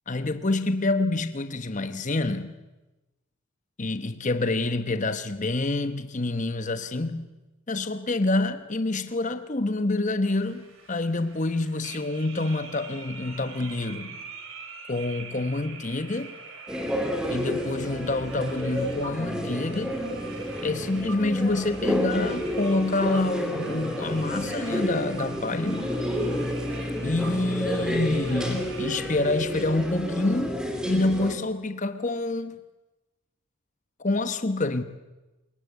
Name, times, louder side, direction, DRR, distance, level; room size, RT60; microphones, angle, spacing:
voice 1, 0.1-2.6 3.8-7.3 7.7-14.2 14.9-16.4 17.3-20.0 20.6-25.9 27.0-32.6 34.0-34.8, left 2 dB, 35° left, 1.1 m, -27 dB
sound 1, 10.2-30.0, right 4 dB, 60° right, 4.3 m, -45 dB
sound 2, 16.7-31.3, equal, 5° right, 2.8 m, -30 dB
26.5 x 22.0 x 8.4 m
head